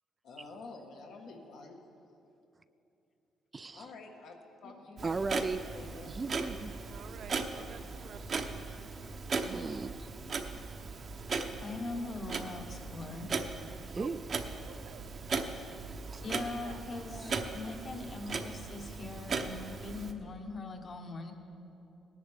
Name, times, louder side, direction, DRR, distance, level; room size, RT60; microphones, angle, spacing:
voice 1, 0.2-1.8 3.7-4.3 4.6-5.2 5.7-6.1 11.9-12.1, left 3 dB, 80° left, 1.5 m, -48 dB
voice 2, 3.5-3.9 5.0-5.7 6.1-6.8 9.5-10.1 13.0-13.1 14.0-14.2 16.1-16.2 16.9-17.9, right 4 dB, 30° right, 0.3 m, -38 dB
Clock, 5.0-20.1, right 4 dB, 50° right, 0.9 m, -38 dB
voice 3, 6.8-8.6 13.9-14.1 14.5-15.0 15.4-15.5 16.2-16.8, right 7 dB, 75° right, 0.7 m, -51 dB
voice 4, 11.6-13.3 16.2-21.3, left 3 dB, 45° left, 1.2 m, -41 dB
18.0 x 10.5 x 3.5 m
cardioid pair, 90°, 0 cm